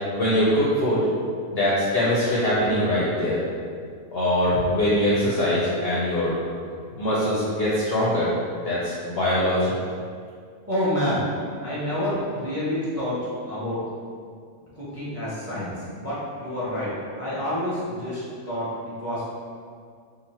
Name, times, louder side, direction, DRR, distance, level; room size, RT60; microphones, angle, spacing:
voice 1, 0.1-1.0 1.5-3.4 4.1-6.3 7.0-8.3 8.6-9.7, left 1 dB, 60° left, -8 dB, 0.7 m, -22 dB
voice 2, 10.7-11.3 11.6-13.2 13.5-13.8 14.7-16.9 17.2-19.2, left 1 dB, 15° right, -10 dB, 0.7 m, -28 dB
2.9 x 2.5 x 4.2 m, 2.1 s
omnidirectional pair, 1.5 m